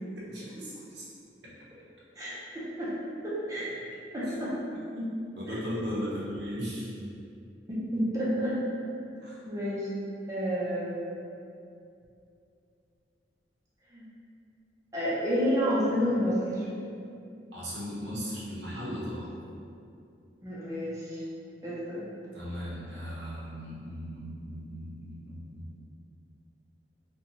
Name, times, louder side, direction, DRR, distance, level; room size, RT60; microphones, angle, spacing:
voice 1, 0.3-1.1 4.9-5.1 5.3-6.9 9.2-9.4 17.5-19.3 22.3-25.7, equal, 75° right, -6 dB, 0.7 m, -37 dB
voice 2, 2.2-2.9 3.2-3.7 4.1-4.5 7.7-8.6 9.4-9.9 10.3-11.2 13.9-14.0 14.9-16.7 20.4-21.2 21.6-22.0, equal, 20° right, -9 dB, 0.4 m, -30 dB
2.6 x 2.2 x 2.8 m, 2.5 s
head